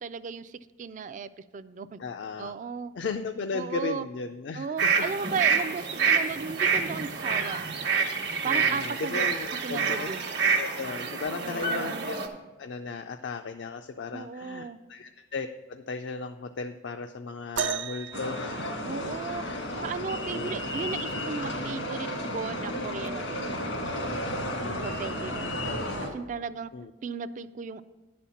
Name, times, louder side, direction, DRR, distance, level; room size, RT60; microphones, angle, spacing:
voice 1, 0.0-2.0 2.4-2.9 3.5-4.1 4.5-7.6 8.4-9.3 9.6-10.2 11.4-12.1 14.1-14.8 18.8-23.7 24.3-25.7 26.0-26.7 27.0-27.8, right 5 dB, 45° right, 13 dB, 0.3 m, -36 dB
voice 2, 2.0-2.6 2.9-5.1 5.9-6.1 8.4-10.1 10.6-12.3 12.6-18.7 19.4-19.6 20.3-20.6 24.6-25.1 26.7-26.9, left 4 dB, 65° left, 6 dB, 0.4 m, -36 dB
sound 1, 4.8-12.3, right 5 dB, 65° right, 1.0 m, -27 dB
sound 2, 17.6-19.5 21.1-21.2 22.0-22.2 23.2-23.3, right 7 dB, 85° right, 0.6 m, -34 dB
sound 3, 18.1-26.1, left 1 dB, 90° left, 1.5 m, -33 dB
10.5 x 4.3 x 7.0 m, 1.2 s
head